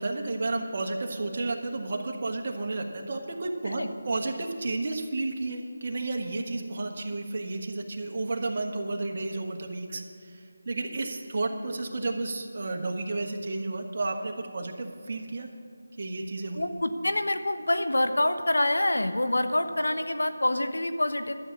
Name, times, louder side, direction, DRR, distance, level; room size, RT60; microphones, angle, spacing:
voice 1, 0.0-15.5 16.0-16.6, right 2 dB, 40° right, 2 dB, 1.4 m, -32 dB
voice 2, 16.5-21.3, left 1 dB, 90° left, 9 dB, 1.0 m, -26 dB
12.5 x 7.4 x 8.5 m, 2.4 s
figure-of-eight pair, 170°, 0 cm